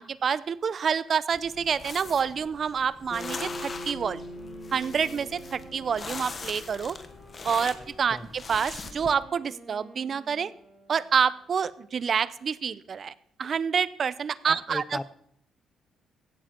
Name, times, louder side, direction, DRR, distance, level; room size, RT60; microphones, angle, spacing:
voice 1, 0.0-4.2 4.7-7.0 7.4-10.5 10.9-13.1 13.4-15.0, right 6 dB, 50° right, 18 dB, 0.6 m, -27 dB
sound 1, 1.3-9.1, left 4 dB, 35° left, 1.3 m, -41 dB
Bass guitar, 3.1-7.5, equal, 55° left, 5.0 m, -42 dB
Wind instrument woodwind instrument, 3.9-11.5, right 1 dB, 30° right, 3.3 m, -52 dB
voice 2, 14.5-15.0, left 2 dB, 15° left, 16 dB, 0.6 m, -35 dB
16.0 x 7.4 x 4.4 m, 0.70 s
cardioid pair, 90°, 0 cm